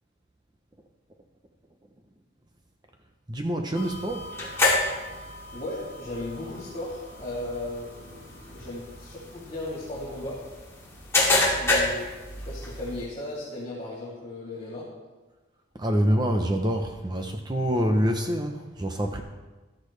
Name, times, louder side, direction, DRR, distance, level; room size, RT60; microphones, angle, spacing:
voice 1, 3.3-4.3 15.7-19.2, equal, 20° right, 4 dB, 0.7 m, -26 dB
sound 1, 3.7-13.0, left 2 dB, 15° left, 2.5 m, -29 dB
voice 2, 5.5-10.4 11.3-12.1 12.5-14.9, left 2 dB, 30° left, -8 dB, 2.7 m, -36 dB
15.0 x 12.0 x 3.3 m, 1.2 s
head